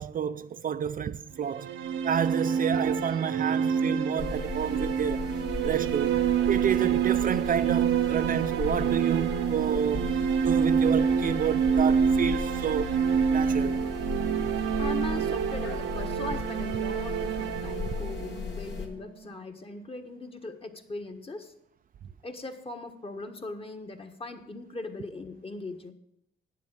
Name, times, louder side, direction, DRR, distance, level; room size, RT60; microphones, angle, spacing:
voice 1, 0.0-1.7 2.0-5.3 5.6-6.2 6.5-13.0 13.3-13.8 17.9-18.0, right 8 dB, 45° right, 0.4 m, -30 dB
sound 1, 1.4-19.3, right 7 dB, 85° right, 0.8 m, -27 dB
sound 2, 4.2-18.9, left 4 dB, 65° left, 2.4 m, -37 dB
voice 2, 14.8-21.5 22.2-25.9, left 3 dB, 30° left, 1.5 m, -39 dB
9.8 x 7.5 x 8.9 m
cardioid pair, 90°, 20 cm